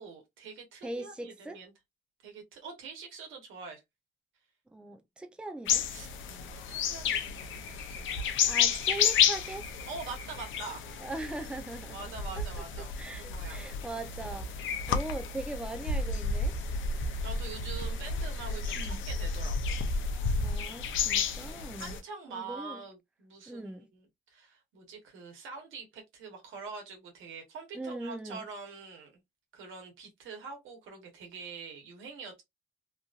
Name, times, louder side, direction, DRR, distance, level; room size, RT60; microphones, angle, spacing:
voice 1, 0.0-1.7 2.2-3.8 5.9-8.6 9.9-10.9 11.9-13.6 17.2-19.8 21.8-24.0 24.3-29.1 29.5-32.4, right 4 dB, 85° right, 1.2 m, -45 dB
voice 2, 0.8-1.6 4.7-5.9 8.4-9.6 11.0-12.4 13.0-16.6 18.8-19.0 20.4-22.0 22.3-22.8 23.5-23.9 27.7-28.4, right 2 dB, 5° right, 0.5 m, -40 dB
sound 1, 5.7-22.0, left 6 dB, 75° left, 0.6 m, -31 dB
3.0 x 2.5 x 2.4 m
cardioid pair, 90°, 20 cm